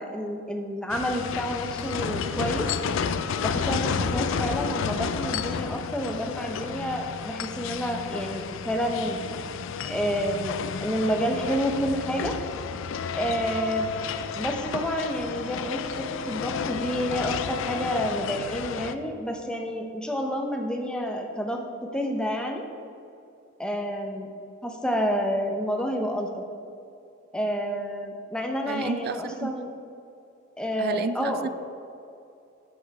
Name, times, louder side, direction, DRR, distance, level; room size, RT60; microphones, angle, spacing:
voice 1, 0.0-2.7 3.4-9.2 9.9-12.3 13.1-13.9 14.4-22.7 23.6-24.3 24.6-26.4 27.3-29.7 30.6-31.5, equal, 5° left, 2 dB, 0.7 m, -29 dB
sound 1, 0.9-18.9, left 6 dB, 65° left, 0.4 m, -31 dB
voice 2, 28.6-29.5 30.8-31.5, right 5 dB, 50° right, 13 dB, 0.3 m, -31 dB
8.0 x 6.1 x 4.7 m, 2.7 s
head